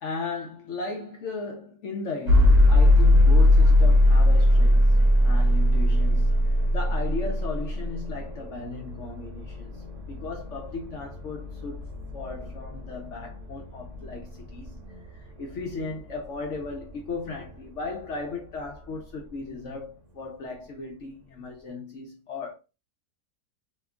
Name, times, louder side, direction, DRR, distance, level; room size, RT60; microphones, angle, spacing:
voice 1, 0.0-14.8 15.1-22.5, left 3 dB, 65° left, 0.7 m, -36 dB
sound 1, 2.3-18.2, left 1 dB, 55° right, 1.0 m, -22 dB
2.9 x 2.3 x 3.5 m
omnidirectional pair, 1.8 m